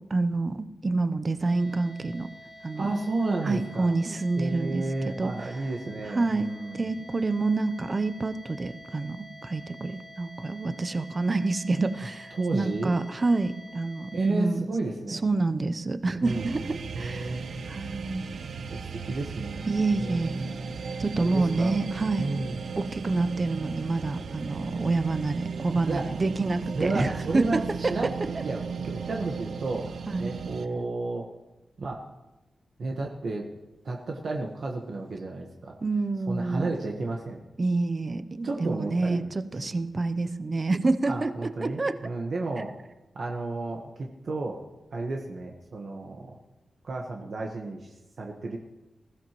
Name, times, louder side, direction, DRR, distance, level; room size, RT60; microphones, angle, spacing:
voice 1, 0.1-2.3 2.6-2.9 3.4-5.3 6.1-6.5 6.7-14.7 15.1-18.2 19.7-20.4 21.0-22.2 22.8-27.9 30.1-30.3 35.8-36.7 37.6-42.0, right 3 dB, 30° right, 11 dB, 0.6 m, -28 dB
sound 1, 1.4-14.3, left 1 dB, 35° left, 2.4 m, -48 dB
voice 2, 2.8-3.9 4.4-6.9 12.3-12.9 14.1-15.3 16.2-16.5 16.9-17.6 18.7-19.6 19.9-21.8 22.2-22.6 25.9-26.1 26.7-28.6 28.9-31.3 31.8-32.0 32.8-33.5 33.8-35.7 36.3-37.4 38.4-39.2 41.0-42.7 43.1-44.6 44.9-46.4 46.8-48.6, right 2 dB, 55° right, 0 dB, 1.2 m, -32 dB
sound 2, 16.2-30.7, right 5 dB, 80° right, 0.8 m, -36 dB
20.5 x 16.0 x 3.0 m, 1.0 s
wide cardioid pair, 165°, 0 cm